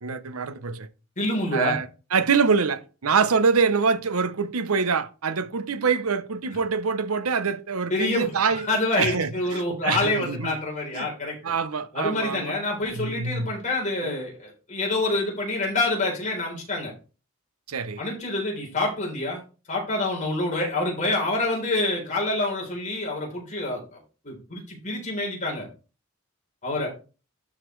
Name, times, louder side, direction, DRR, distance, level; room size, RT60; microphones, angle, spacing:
voice 1, 0.0-0.9 1.5-8.7 9.0-10.6 10.9-11.1 11.4-12.5 12.9-13.6 14.0-14.2 17.7-18.0, right 5 dB, 90° right, 0.7 m, -25 dB
voice 2, 1.2-1.8 7.9-8.3 8.6-11.4 11.9-16.9 18.0-19.4 19.7-24.0 24.2-25.7 26.6-26.9, left 2 dB, 35° left, 3.6 m, -27 dB
12.0 x 5.1 x 3.2 m
head